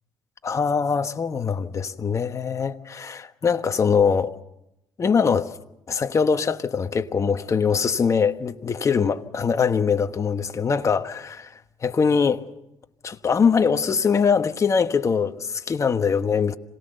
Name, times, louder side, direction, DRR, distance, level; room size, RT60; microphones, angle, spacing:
voice 1, 0.4-4.3 5.0-5.5 5.9-11.5 11.8-12.4 13.0-16.6, left 6 dB, 35° left, 1.2 m, -22 dB
26.5 x 18.0 x 6.7 m
supercardioid pair, 85°, 9 cm